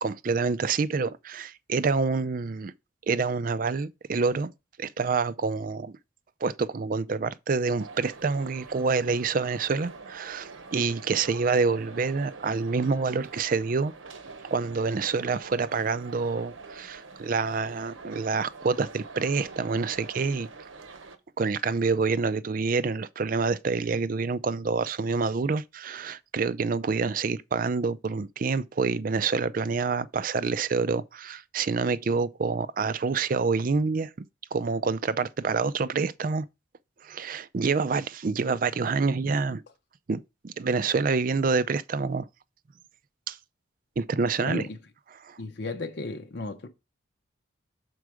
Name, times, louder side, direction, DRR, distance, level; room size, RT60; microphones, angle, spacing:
voice 1, 0.0-2.7 3.1-4.5 4.8-5.9 6.4-13.9 14.4-20.5 21.4-34.1 34.5-36.5 37.0-39.6 40.1-40.2 40.4-42.3 43.3-43.4 44.0-44.7 45.2-45.4, right 4 dB, 45° right, 0.4 m, -27 dB
sound 1, 7.8-21.2, right 4 dB, 85° right, 0.9 m, -45 dB
voice 2, 44.5-44.8 45.4-46.7, left 3 dB, 55° left, 0.7 m, -34 dB
6.3 x 4.6 x 4.7 m
head